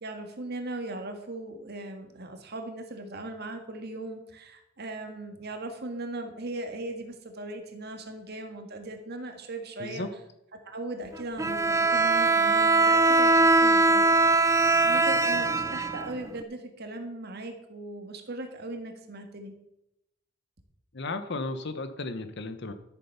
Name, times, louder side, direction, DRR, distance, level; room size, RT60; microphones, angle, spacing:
voice 1, 0.0-10.1 10.7-14.0 14.4-19.5, right 2 dB, 55° right, 5 dB, 1.8 m, -38 dB
Bowed string instrument, 11.4-16.4, right 3 dB, 15° right, 0.4 m, -21 dB
voice 2, 20.9-22.7, left 2 dB, 60° left, 9 dB, 1.0 m, -34 dB
13.0 x 7.2 x 5.7 m, 0.88 s
head